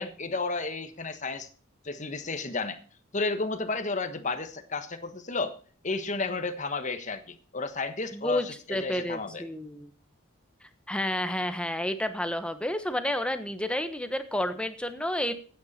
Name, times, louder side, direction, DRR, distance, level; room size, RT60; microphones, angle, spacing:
voice 1, 0.0-1.5 1.8-2.8 3.1-5.6 5.8-9.4, left 3 dB, 35° left, 9 dB, 1.3 m, -32 dB
voice 2, 8.1-9.9 10.9-15.3, left 1 dB, 5° left, 9 dB, 1.1 m, -30 dB
14.0 x 9.4 x 4.2 m, 0.41 s
head